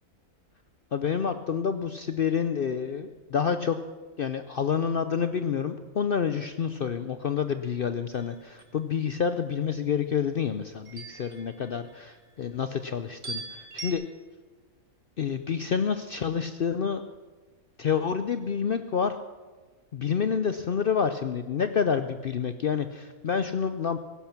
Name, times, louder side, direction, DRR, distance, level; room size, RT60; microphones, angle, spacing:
voice 1, 0.9-3.8 4.2-14.0 15.2-17.0 17.8-19.2 19.9-24.0, left 7 dB, 60° left, 10 dB, 0.5 m, -28 dB
sound 1, 8.1-8.7 10.9-12.2 13.2-13.9, right 4 dB, 50° right, 2.0 m, -41 dB
15.5 x 11.5 x 5.9 m, 1.3 s
omnidirectional pair, 1.6 m